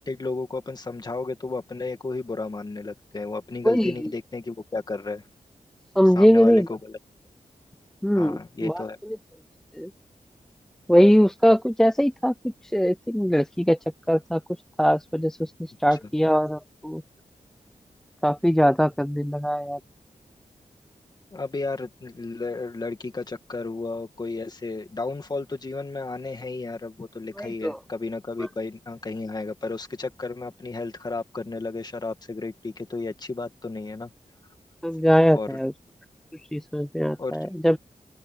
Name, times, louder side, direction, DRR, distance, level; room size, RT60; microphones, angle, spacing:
voice 1, 0.0-5.2 6.1-7.0 8.2-9.0 21.3-34.1 35.3-35.6 37.2-37.5, left 3 dB, 30° left, 2.0 m, -33 dB
voice 2, 3.6-4.1 6.0-6.7 8.0-8.8 9.8-9.9 10.9-12.3 12.7-13.8 14.1-14.4 14.8-17.0 18.2-19.8 27.4-27.8 28.4-28.5 34.8-35.7 36.5-37.8, equal, 5° left, 0.5 m, -21 dB
open air
wide cardioid pair, 170°, 13 cm